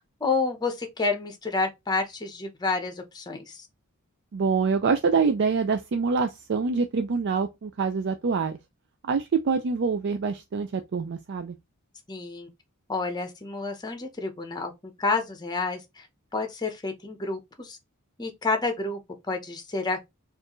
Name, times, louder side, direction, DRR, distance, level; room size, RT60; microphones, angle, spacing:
voice 1, 0.0-3.7 12.1-12.5 12.9-16.1 16.3-17.8 18.2-19.0 19.3-20.0, left 3 dB, 20° left, 0.8 m, -29 dB
voice 2, 4.3-8.6 9.0-11.6, right 5 dB, 50° right, 0.4 m, -25 dB
4.3 x 2.5 x 3.0 m
head